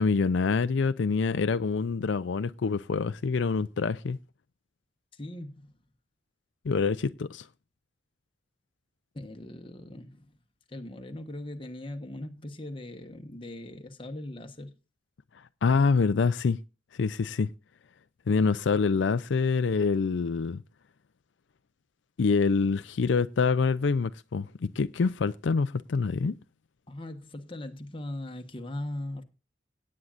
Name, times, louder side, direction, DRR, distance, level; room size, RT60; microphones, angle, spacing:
voice 1, 0.0-4.2 6.6-7.5 15.6-16.6 17.0-17.5 18.3-20.6 22.2-26.4, left 4 dB, 75° left, 0.5 m, -26 dB
voice 2, 5.1-5.8 9.1-10.3 10.7-14.7 26.9-29.2, left 1 dB, 30° left, 1.2 m, -39 dB
17.5 x 8.6 x 2.5 m
head